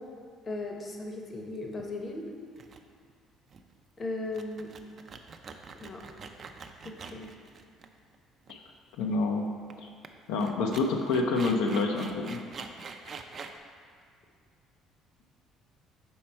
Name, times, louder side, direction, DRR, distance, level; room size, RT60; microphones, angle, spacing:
voice 1, 0.5-2.3 4.0-4.7 5.8-6.0 6.8-7.3, left 2 dB, 30° left, 2 dB, 0.7 m, -37 dB
sound 1, 1.8-2.1 2.6-2.8 3.1-3.2 3.5-3.8 4.2-8.2 8.4-8.5 9.7-9.8 10.0-10.1 10.4-13.6, right 5 dB, 45° right, 0.4 m, -45 dB
voice 2, 9.0-9.5 9.8-9.9 10.3-12.4, left 3 dB, 85° left, 2 dB, 0.5 m, -28 dB
5.4 x 4.3 x 4.3 m, 2.2 s
cardioid pair, 105°, 0 cm